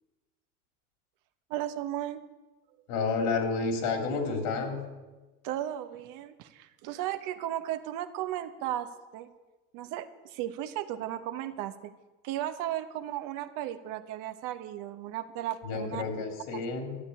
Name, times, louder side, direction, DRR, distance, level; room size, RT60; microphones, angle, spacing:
voice 1, 1.5-2.2 5.4-9.3 9.7-11.9 12.2-16.0 16.5-16.6, right 12 dB, 60° right, 10 dB, 1.1 m, -35 dB
voice 2, 2.9-4.8 15.6-17.0, left 4 dB, 70° left, 5 dB, 3.5 m, -30 dB
13.0 x 7.5 x 10.0 m, 1.2 s
supercardioid pair, 125°, 36 cm